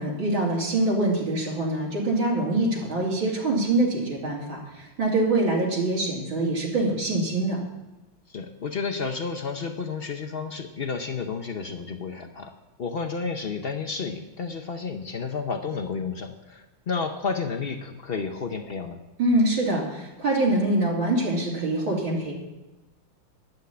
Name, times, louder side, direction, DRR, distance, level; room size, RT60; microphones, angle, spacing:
voice 1, 0.0-7.6 19.2-22.3, right 2 dB, 65° right, -5 dB, 3.7 m, -24 dB
voice 2, 8.3-12.5 12.8-19.0, left 5 dB, 70° left, 6 dB, 0.5 m, -31 dB
12.0 x 8.4 x 8.6 m, 1.1 s
omnidirectional pair, 2.3 m